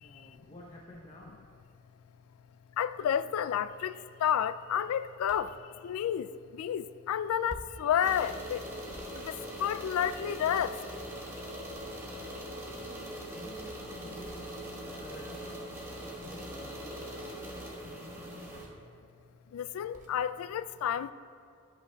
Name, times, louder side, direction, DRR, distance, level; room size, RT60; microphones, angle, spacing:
voice 1, 0.0-1.4 12.7-14.6 14.9-15.7 16.0-18.0, equal, 25° left, 0.9 m, -52 dB
voice 2, 2.8-3.9 4.2-5.5 5.8-6.3 6.6-8.6 9.2-9.3 9.6-10.7 19.5-21.1, left 9 dB, 85° left, 0.3 m, -30 dB
sound 1, 5.3-5.6 7.5-7.9 8.9-10.1 11.7-12.3 14.2-14.5 16.1-16.5 18.5-18.9 19.9-20.2, right 1 dB, 35° right, 0.8 m, -50 dB
sound 2, 8.0-18.6, equal, 10° right, 1.3 m, -42 dB
13.5 x 11.5 x 2.3 m
head